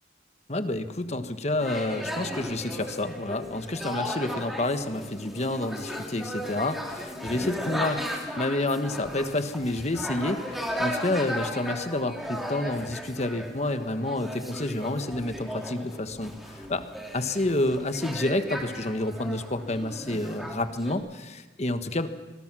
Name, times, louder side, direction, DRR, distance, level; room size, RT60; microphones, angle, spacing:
voice 1, 0.5-16.8 17.1-22.1, left 2 dB, 40° left, 9 dB, 1.4 m, -29 dB
sound 1, 1.6-20.9, equal, ahead, 3.0 m, -36 dB
26.0 x 21.5 x 6.2 m, 1.2 s
head